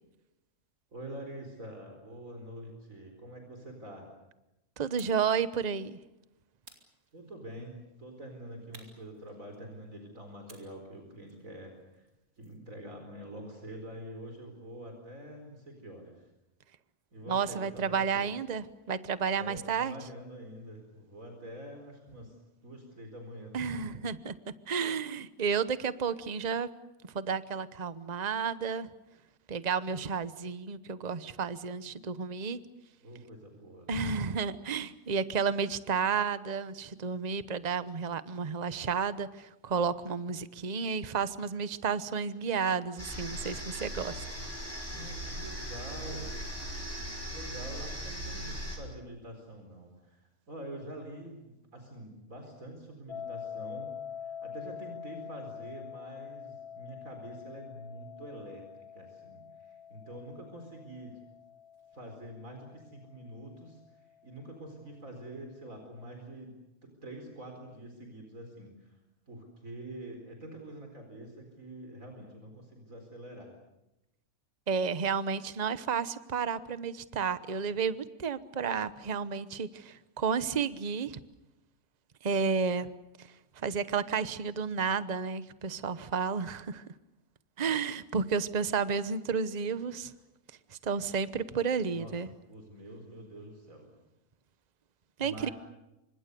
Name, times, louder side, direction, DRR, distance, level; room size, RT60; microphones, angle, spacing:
voice 1, 0.9-4.1 7.1-12.1 12.4-16.3 17.1-18.3 19.4-22.4 22.6-24.1 33.0-33.9 44.9-46.4 47.3-53.9 54.2-61.2 61.9-69.0 69.3-73.5 91.9-93.9 95.2-95.5, right 1 dB, 65° right, 3 dB, 4.8 m, -46 dB
voice 2, 4.8-6.0 17.3-19.9 23.5-24.3 24.7-26.7 27.1-28.9 29.5-32.6 33.9-44.2 74.7-81.2 82.2-82.9 83.6-86.8 87.6-90.1 90.7-92.3 95.2-95.5, right 6 dB, 30° right, 14 dB, 1.0 m, -31 dB
sound 1, 5.0-5.3 6.6-7.6 8.7-9.8 10.5-12.7, right 2 dB, 80° right, 4.6 m, -57 dB
sound 2, 43.0-48.8, right 1 dB, 10° left, 6.5 m, -39 dB
sound 3, 53.1-64.0, left 8 dB, 45° left, 1.9 m, -45 dB
28.0 x 25.0 x 6.8 m, 0.93 s
omnidirectional pair, 1.5 m